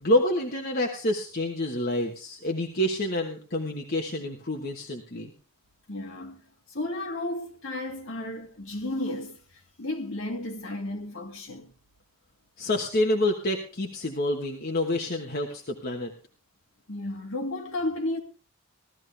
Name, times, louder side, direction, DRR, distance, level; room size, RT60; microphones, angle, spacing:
voice 1, 0.0-5.3 12.6-16.1, left 1 dB, 45° left, 1.3 m, -28 dB
voice 2, 5.9-6.4 6.7-9.4 9.8-11.7 16.9-18.2, left 1 dB, 60° left, 2.3 m, -33 dB
16.5 x 13.0 x 3.4 m
head